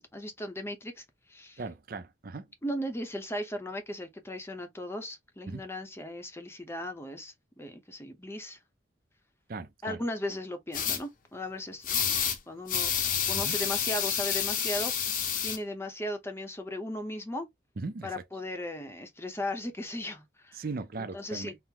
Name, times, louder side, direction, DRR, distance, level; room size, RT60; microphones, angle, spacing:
voice 1, 0.0-1.6 2.6-8.6 9.8-12.9 13.3-14.9 15.4-17.5 18.0-20.6 21.0-21.5, left 1 dB, 15° left, 0.7 m, -37 dB
voice 2, 1.6-2.4 5.5-5.6 9.5-10.0 13.4-13.5 17.8-18.1 20.6-21.6, right 3 dB, 50° right, 0.5 m, -38 dB
sound 1, 10.7-11.0 11.8-12.4 12.7-15.6, left 8 dB, 45° left, 0.8 m, -29 dB
4.4 x 2.1 x 3.7 m
head